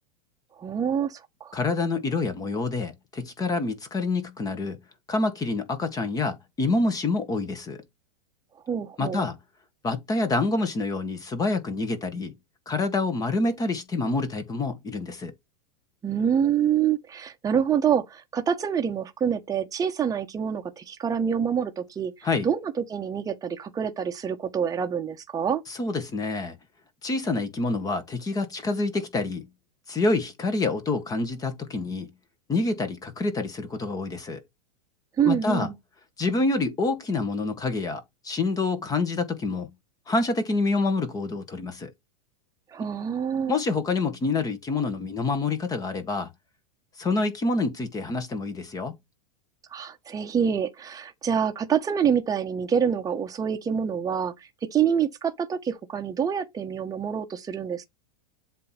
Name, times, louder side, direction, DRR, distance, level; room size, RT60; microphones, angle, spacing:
voice 1, 0.6-1.5 8.7-9.3 16.0-22.1 22.4-25.6 35.2-35.8 42.7-43.6 49.7-57.8, right 8 dB, 15° right, 1.2 m, -26 dB
voice 2, 1.5-4.8 5.1-7.8 9.0-9.4 9.8-12.3 12.7-15.3 22.2-22.5 25.7-26.6 27.0-29.5 29.9-32.1 32.5-34.4 35.2-35.7 36.2-39.7 40.1-41.9 42.8-42.9 43.5-46.3 47.0-48.9, left 3 dB, 20° left, 1.6 m, -27 dB
7.6 x 3.1 x 5.9 m
supercardioid pair, 130°, 20 cm